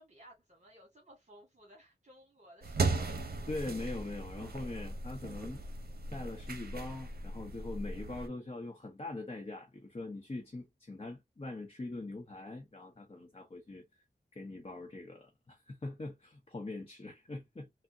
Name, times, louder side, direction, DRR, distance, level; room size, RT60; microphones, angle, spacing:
voice 1, 0.0-3.4, equal, 45° right, 1.4 m, -58 dB
sound 1, 2.6-8.3, right 3 dB, 60° right, 0.7 m, -37 dB
voice 2, 3.5-5.6 6.1-14.0 14.3-17.7, left 2 dB, 35° left, 0.8 m, -42 dB
3.5 x 2.1 x 2.6 m
wide cardioid pair, 55°, 17 cm